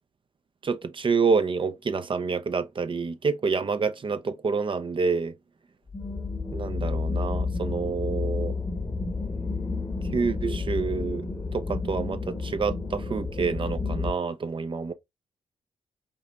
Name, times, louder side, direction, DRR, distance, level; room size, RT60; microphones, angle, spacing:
voice 1, 0.6-5.3 6.5-8.5 10.1-11.3 11.5-14.9, right 5 dB, 40° right, 0.6 m, -27 dB
sound 1, 5.9-14.1, left 4 dB, 25° left, 1.1 m, -31 dB
5.3 x 2.8 x 2.4 m
cardioid pair, 60°, 13 cm